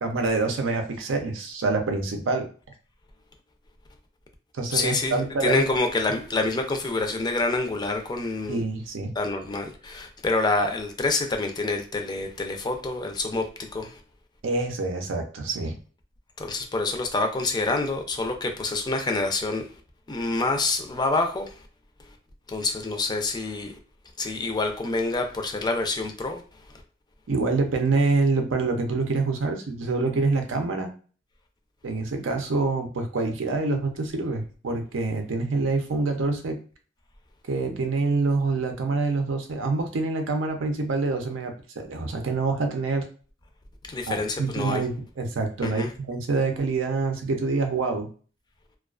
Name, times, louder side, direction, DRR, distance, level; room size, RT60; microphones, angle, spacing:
voice 1, 0.0-2.5 4.6-5.6 8.5-9.1 14.4-15.8 27.3-30.9 31.8-36.6 37.5-43.1 44.1-48.1, right 3 dB, 85° right, 0.5 m, -26 dB
voice 2, 4.7-8.6 9.2-14.0 16.4-19.6 20.1-21.7 22.5-23.8 24.2-26.4 26.7-26.8 43.9-44.8 45.6-45.9, left 3 dB, 20° left, 0.4 m, -27 dB
2.3 x 2.3 x 2.3 m
head